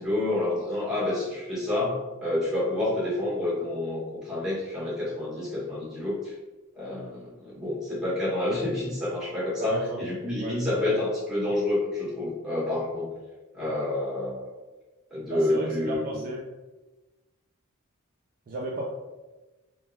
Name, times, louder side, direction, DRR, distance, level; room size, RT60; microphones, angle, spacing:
voice 1, 0.0-6.3 6.7-13.1 13.5-14.5 15.1-16.2, left 1 dB, 5° right, -8 dB, 1.1 m, -28 dB
voice 2, 9.6-10.1 10.4-10.9 15.3-16.4 18.5-18.9, right 1 dB, 40° right, -2 dB, 0.3 m, -33 dB
3.4 x 2.2 x 2.2 m, 1.2 s
head